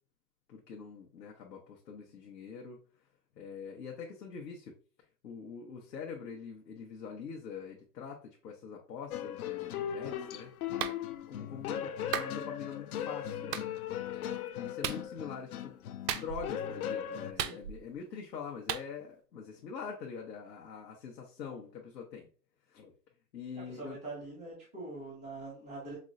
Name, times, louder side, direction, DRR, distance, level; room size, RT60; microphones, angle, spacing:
voice 1, 0.5-2.8 3.4-4.7 5.2-10.5 11.3-13.5 14.6-15.8 16.1-22.3 22.7-22.9 23.3-24.0, left 6 dB, 80° left, -1 dB, 0.9 m, -44 dB
sound 1, 9.1-17.3, left 9 dB, 65° left, 0.5 m, -38 dB
Clapping, 10.8-11.0 12.1-12.3 13.5-13.7 14.8-15.0 16.1-16.5 17.4-17.9 18.7-18.9, right 10 dB, 75° right, 0.6 m, -35 dB
voice 2, 23.7-26.0, right 2 dB, 5° left, -5 dB, 0.3 m, -43 dB
5.3 x 2.1 x 2.5 m, 0.38 s
hypercardioid pair, 145°, 49 cm